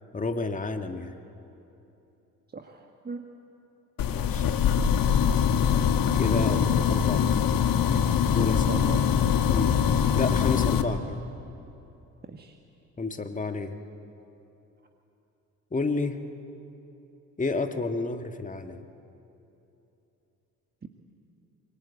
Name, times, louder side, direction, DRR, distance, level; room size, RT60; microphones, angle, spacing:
voice 1, 0.1-1.1 4.1-4.5 6.1-6.6 6.9-7.3 8.3-8.7 9.5-9.8 10.2-11.2 13.0-13.7 15.7-16.2 17.4-18.8, left 3 dB, 15° left, 7 dB, 1.7 m, -30 dB
voice 2, 2.5-3.2 6.4-6.9 8.5-9.1 12.2-12.6 20.8-20.9, right 4 dB, 20° right, 5 dB, 1.6 m, -37 dB
sound 1, 4.0-10.8, left 8 dB, 45° left, 1.6 m, -23 dB
25.0 x 23.5 x 8.4 m, 2.9 s
figure-of-eight pair, 50°, 45 cm